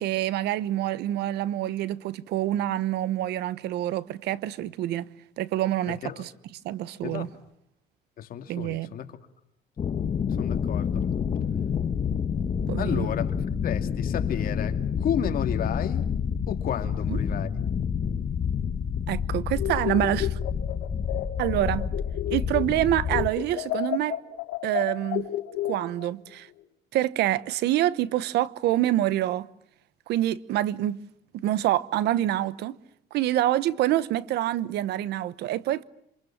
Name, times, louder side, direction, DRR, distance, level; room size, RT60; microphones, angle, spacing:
voice 1, 0.0-5.1 5.4-6.3 6.6-7.3 8.5-8.9 12.7-13.1 17.1-17.2 19.1-20.4 21.4-21.9 22.3-24.2 24.6-25.3 25.6-26.5 26.9-29.5 30.1-31.0 31.3-32.8 33.1-35.8, right 13 dB, 80° right, 1.0 m, -26 dB
voice 2, 5.9-6.2 7.0-7.3 8.2-9.1 10.4-11.0 12.8-13.3 13.6-16.1 16.5-17.6, left 9 dB, 60° left, 2.6 m, -32 dB
sound 1, 9.8-23.3, left 7 dB, 40° left, 1.5 m, -28 dB
sound 2, 19.5-22.8 23.1-26.1, left 14 dB, 85° left, 3.2 m, -32 dB
28.0 x 26.5 x 7.4 m
cardioid pair, 110°, 17 cm